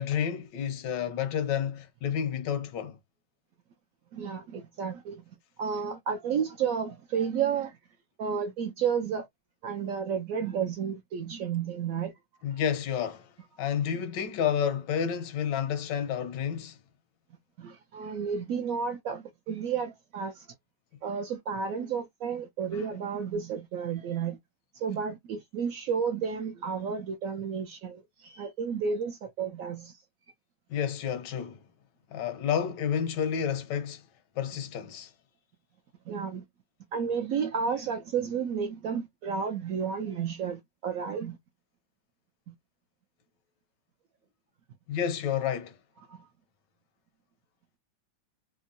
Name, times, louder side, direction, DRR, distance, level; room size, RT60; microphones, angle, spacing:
voice 1, 0.0-3.0 12.4-13.3 13.6-16.8 30.7-31.6 32.1-34.0 34.4-35.1 44.9-45.7, left 8 dB, 85° left, 1.4 m, -30 dB
voice 2, 4.1-5.2 5.6-7.8 8.2-9.3 9.6-12.1 17.6-20.5 21.0-24.4 24.7-30.0 36.1-36.4 36.9-41.4 42.5-42.6 46.1-46.3, right 6 dB, 70° right, 0.8 m, -32 dB
3.5 x 2.0 x 2.5 m
omnidirectional pair, 1.9 m